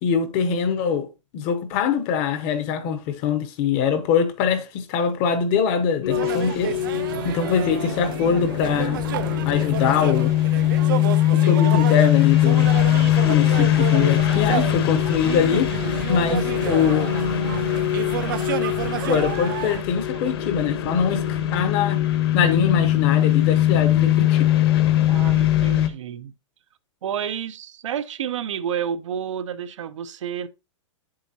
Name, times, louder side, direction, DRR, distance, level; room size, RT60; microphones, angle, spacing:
voice 1, 0.0-1.1 1.3-6.7 7.2-9.0 9.4-10.3 11.3-12.7 13.2-15.8 16.1-17.1 19.1-22.0 22.3-24.5, left 7 dB, 25° left, 0.8 m, -23 dB
sound 1, 6.0-25.9, left 13 dB, 50° left, 1.1 m, -21 dB
sound 2, 6.1-19.8, right 10 dB, 45° right, 0.6 m, -30 dB
voice 2, 20.0-20.4 25.1-26.3 27.0-30.5, right 8 dB, 75° right, 0.8 m, -30 dB
8.2 x 7.6 x 2.8 m
supercardioid pair, 175°, 16 cm